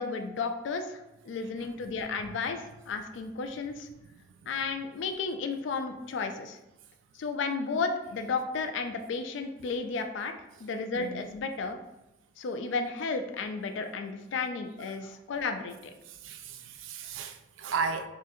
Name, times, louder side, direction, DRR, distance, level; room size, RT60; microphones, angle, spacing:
voice 1, 0.0-3.9 4.5-6.6 7.1-10.3 10.6-11.8 12.4-15.9, left 4 dB, 80° left, 7 dB, 0.4 m, -33 dB
voice 2, 10.9-11.2 16.1-18.1, right 5 dB, 90° right, 7 dB, 0.4 m, -35 dB
3.8 x 2.4 x 2.7 m, 0.94 s
head